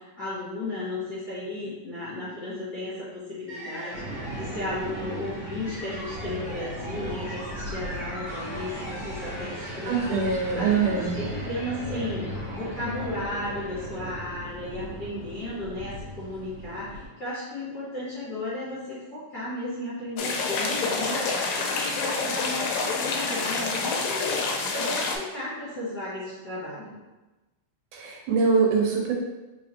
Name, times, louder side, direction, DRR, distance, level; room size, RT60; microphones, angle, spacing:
voice 1, 0.0-10.2 10.6-24.4 24.7-26.9, left 1 dB, 55° left, -10 dB, 1.1 m, -34 dB
sound 1, 3.5-14.6, equal, 60° right, 0.7 m, -39 dB
sound 2, 3.9-17.1, equal, 40° right, 1.8 m, -38 dB
voice 2, 9.9-11.2 27.9-29.1, right 5 dB, 85° right, -1 dB, 2.3 m, -23 dB
sound 3, 20.2-25.2, left 4 dB, 80° left, 1.8 m, -27 dB
4.7 x 3.4 x 2.8 m, 1.1 s
omnidirectional pair, 3.5 m